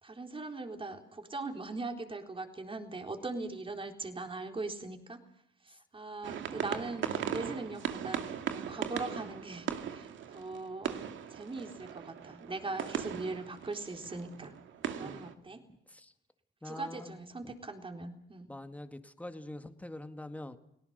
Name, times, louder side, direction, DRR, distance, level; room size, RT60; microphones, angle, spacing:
voice 1, 0.0-5.2 5.6-11.0 11.3-14.5 15.0-15.6 16.6-18.5, right 3 dB, 25° right, 5 dB, 3.9 m, -40 dB
sound 1, 6.2-15.3, right 8 dB, 75° right, 2.3 m, -39 dB
voice 2, 15.0-15.6 15.9-16.1 16.6-17.5 18.5-20.6, left 1 dB, 5° left, 9 dB, 1.9 m, -45 dB
29.5 x 18.5 x 6.7 m, 0.76 s
cardioid pair, 90°, 20 cm